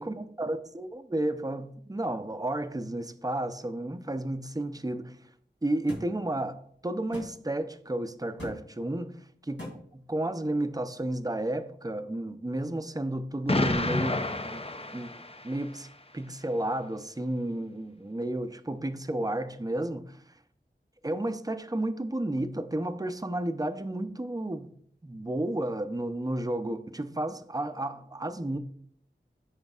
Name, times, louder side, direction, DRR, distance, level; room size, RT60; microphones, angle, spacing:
voice 1, 0.0-5.2 5.6-9.2 9.4-9.7 9.9-14.6 14.9-15.2 15.4-15.9 16.1-20.2 21.0-24.7 25.0-28.6, right 1 dB, 20° right, 0.6 m, -32 dB
sound 1, 5.9-6.1 7.1-7.3 8.4-8.6 9.6-9.7, left 1 dB, 85° left, 3.0 m, -38 dB
Explosion, 13.5-15.7, left 2 dB, 30° left, 0.6 m, -30 dB
14.5 x 5.2 x 2.4 m
wide cardioid pair, 45°, 19 cm